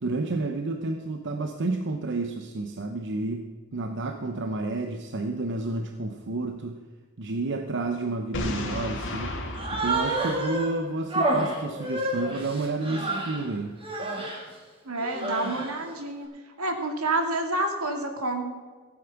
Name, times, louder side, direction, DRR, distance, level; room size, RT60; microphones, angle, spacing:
voice 1, 0.0-6.8 7.2-9.4 9.7-13.8, right 2 dB, 55° right, 6 dB, 0.8 m, -30 dB
Boom, 8.3-11.2, left 1 dB, 60° left, 2.5 m, -34 dB
Human voice, 9.5-10.7 11.1-13.4 13.8-14.4 15.0-15.8, right 1 dB, 25° right, 2.6 m, -29 dB
voice 2, 14.9-16.3 16.6-18.5, right 2 dB, 80° right, 4 dB, 2.3 m, -28 dB
15.5 x 8.7 x 5.9 m, 1.5 s
head